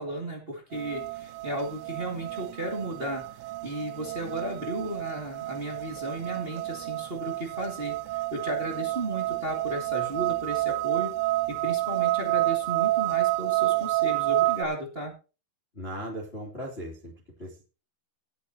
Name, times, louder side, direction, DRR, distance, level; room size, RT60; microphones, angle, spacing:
voice 1, 0.0-11.1 11.5-15.1, right 1 dB, 25° right, 0 dB, 1.2 m, -34 dB
sound 1, 0.7-14.7, right 19 dB, 85° right, 3.1 m, -29 dB
voice 2, 15.7-17.1 17.4-17.6, equal, 15° left, -2 dB, 2.4 m, -37 dB
18.5 x 8.5 x 2.9 m, 0.33 s
omnidirectional pair, 5.4 m